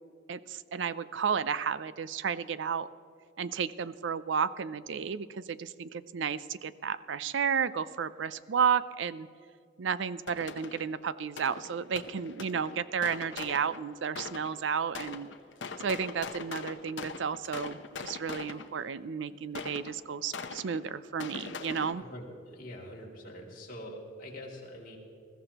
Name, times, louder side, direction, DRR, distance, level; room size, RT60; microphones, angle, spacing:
voice 1, 0.3-2.9 3.4-9.3 9.8-15.3 15.8-22.0, right 6 dB, 65° right, 16 dB, 0.4 m, -32 dB
sound 1, 10.3-11.0 11.4-14.6 14.9-18.9 19.5-21.9, left 4 dB, 65° left, 0.8 m, -41 dB
voice 2, 22.0-25.0, equal, 45° left, -3 dB, 2.6 m, -44 dB
21.0 x 14.5 x 3.0 m, 2.5 s
head